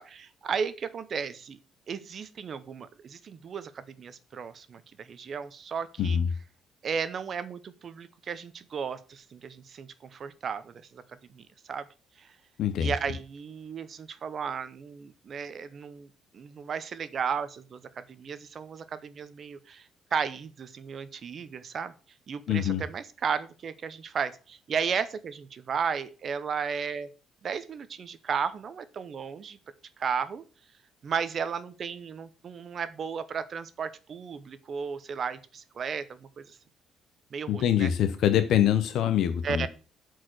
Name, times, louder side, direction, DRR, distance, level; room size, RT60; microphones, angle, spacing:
voice 1, 0.0-1.6 1.9-6.2 6.8-11.9 12.2-12.3 12.8-16.1 16.3-21.9 22.3-27.1 27.4-29.6 30.0-30.4 31.0-36.6 37.3-37.9 39.4-39.7, right 6 dB, 35° right, 0.8 m, -34 dB
voice 2, 6.0-6.3 12.6-12.9 22.5-22.8 37.5-39.7, left 10 dB, 60° left, 0.8 m, -24 dB
8.6 x 4.7 x 6.3 m
cardioid pair, 170°, 0 cm